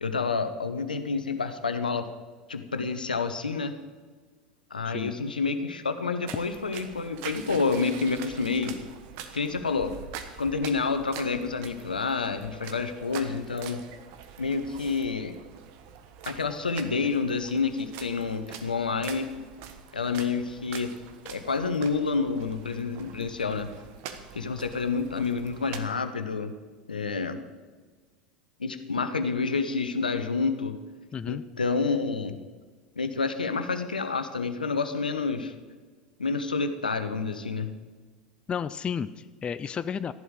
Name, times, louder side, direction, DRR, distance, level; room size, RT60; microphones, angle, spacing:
voice 1, 0.0-2.1 2.5-3.7 4.7-8.8 9.3-9.9 10.4-13.8 14.4-15.3 16.2-19.3 19.9-20.9 21.2-23.7 24.3-26.5 26.9-27.4 28.6-30.8 31.3-32.4 33.0-35.5 36.2-37.7, left 4 dB, 80° left, 9 dB, 1.0 m, -28 dB
sound 1, 6.3-25.8, right 8 dB, 50° right, 1.2 m, -44 dB
voice 2, 31.1-31.4 38.5-40.1, left 7 dB, 25° left, 14 dB, 0.4 m, -32 dB
14.0 x 11.0 x 5.0 m, 1.4 s
figure-of-eight pair, 80°, 5 cm